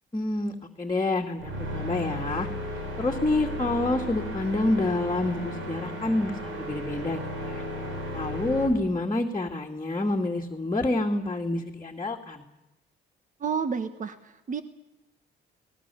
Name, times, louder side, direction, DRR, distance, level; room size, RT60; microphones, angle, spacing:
voice 1, 0.1-2.5 3.0-7.6 8.1-12.4, left 2 dB, 20° left, 0 dB, 2.3 m, -28 dB
sound 1, 1.4-8.7, left 1 dB, 80° right, 5.4 m, -34 dB
voice 2, 13.4-14.6, right 6 dB, 40° right, 10 dB, 1.3 m, -30 dB
26.0 x 20.0 x 7.1 m, 0.93 s
cardioid pair, 90°, 20 cm